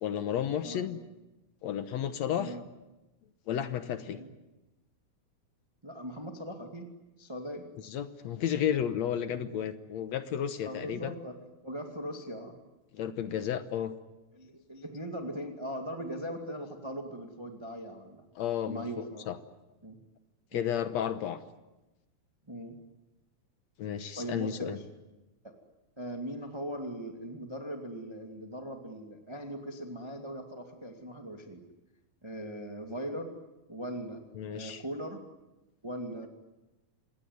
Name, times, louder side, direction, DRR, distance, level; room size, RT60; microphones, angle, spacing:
voice 1, 0.0-1.0 1.6-2.6 3.5-4.2 7.8-11.1 12.9-13.9 18.4-19.4 20.5-21.4 23.8-24.8 34.4-34.8, left 9 dB, 70° left, 10 dB, 1.7 m, -32 dB
voice 2, 5.8-6.9 7.2-7.7 9.3-9.5 10.6-11.4 11.6-12.5 14.3-18.2 18.6-19.3 19.8-20.0 20.5-20.7 22.5-22.8 24.2-24.8 25.4-25.6 26.0-31.6 32.2-33.3 33.7-34.2 34.5-35.2 35.8-36.3, equal, 10° right, 3 dB, 1.2 m, -40 dB
27.5 x 20.5 x 9.5 m, 1.0 s
omnidirectional pair, 4.4 m